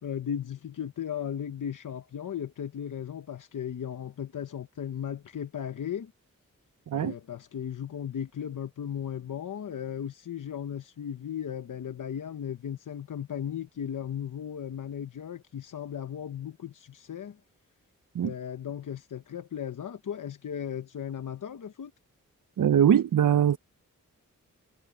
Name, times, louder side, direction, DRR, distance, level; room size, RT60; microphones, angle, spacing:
voice 1, 0.0-6.1 7.0-17.4 18.2-21.9, left 9 dB, 85° left, 1.0 m, -36 dB
voice 2, 22.6-23.6, right 9 dB, 85° right, 0.7 m, -22 dB
wide cardioid pair, 110°, 31 cm